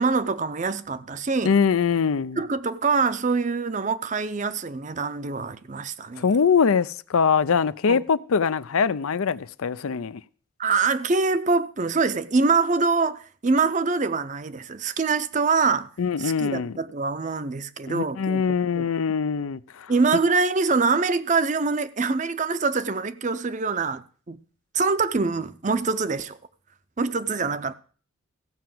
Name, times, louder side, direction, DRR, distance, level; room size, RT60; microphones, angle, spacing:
voice 1, 0.0-1.5 2.4-6.3 7.9-8.0 10.6-15.9 16.2-18.4 18.8-18.9 19.9-24.0 24.3-24.4 24.7-26.4 27.0-27.7, right 4 dB, 35° right, 0.5 m, -24 dB
voice 2, 1.4-2.4 6.2-10.2 16.0-16.7 17.9-19.9, left 6 dB, 85° left, 0.5 m, -23 dB
15.0 x 5.7 x 7.7 m
head